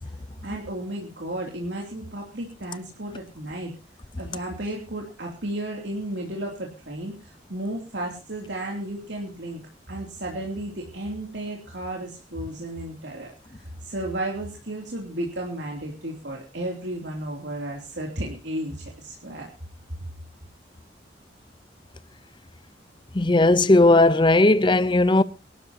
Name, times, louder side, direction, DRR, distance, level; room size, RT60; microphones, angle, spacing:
voice 1, 0.4-3.7 4.2-9.6 9.9-13.3 13.8-19.5, right 1 dB, 75° right, 2.9 m, -33 dB
voice 2, 23.1-25.2, left 2 dB, 25° left, 0.6 m, -17 dB
23.5 x 12.5 x 2.9 m
head